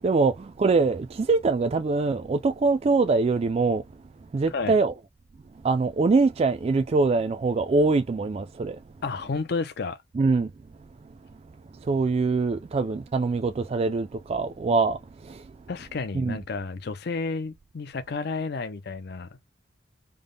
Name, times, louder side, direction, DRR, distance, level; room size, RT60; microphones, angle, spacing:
voice 1, 0.0-3.8 4.3-4.9 5.6-8.8 10.1-10.5 11.8-15.4 16.1-16.4, right 3 dB, 35° right, 0.3 m, -23 dB
voice 2, 9.0-10.0 15.7-19.3, left 4 dB, 55° left, 0.5 m, -31 dB
3.4 x 2.1 x 3.8 m
head